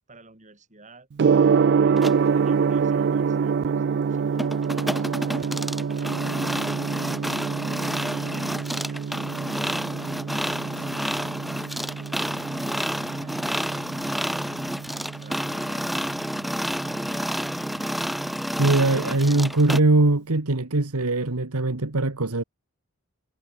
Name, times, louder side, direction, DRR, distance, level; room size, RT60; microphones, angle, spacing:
voice 1, 0.1-1.1 1.8-6.8 8.1-12.3 12.6-15.9 16.8-19.0, right 2 dB, 35° right, 7.5 m, -52 dB
Gong, 1.2-20.2, right 6 dB, 50° right, 0.4 m, -27 dB
sound 1, 2.0-2.2 4.4-19.8, equal, ahead, 1.8 m, -30 dB
voice 2, 18.6-22.4, right 2 dB, 85° right, 1.6 m, -21 dB
head